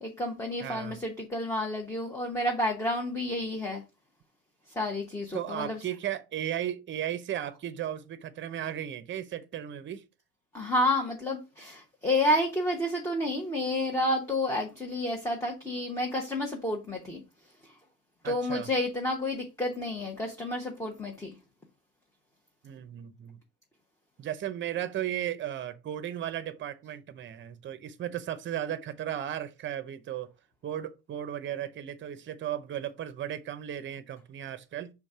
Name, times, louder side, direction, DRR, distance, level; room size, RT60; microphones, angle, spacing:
voice 1, 0.0-3.8 4.7-5.8 10.5-17.2 18.2-21.3, left 1 dB, 10° left, 0.9 m, -30 dB
voice 2, 0.6-1.0 5.3-10.0 18.2-18.7 22.6-23.4 24.2-30.3 30.6-34.9, right 11 dB, 35° right, 0.7 m, -35 dB
6.3 x 3.6 x 5.4 m
cardioid pair, 175°, 35 cm